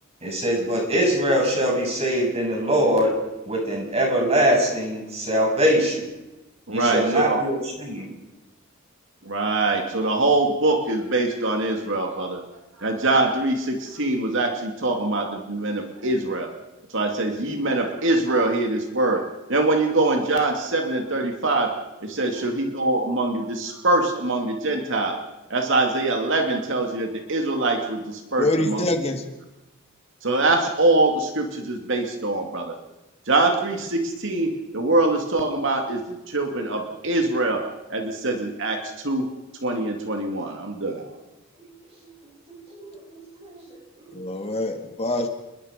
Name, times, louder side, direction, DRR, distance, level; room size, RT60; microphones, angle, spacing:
voice 1, 0.2-6.1 6.7-8.1 42.0-42.1 42.5-43.6 44.0-44.5, equal, 30° right, 0 dB, 7.3 m, -23 dB
voice 2, 6.7-7.4 9.2-12.4 12.8-16.5 16.9-19.2 19.5-28.9 30.2-32.8 33.3-39.3 39.6-41.2, right 2 dB, 60° right, 3 dB, 2.5 m, -23 dB
voice 3, 28.4-29.2 44.1-45.3, left 1 dB, 30° left, 5 dB, 1.9 m, -25 dB
28.5 x 22.0 x 5.2 m, 1.0 s
head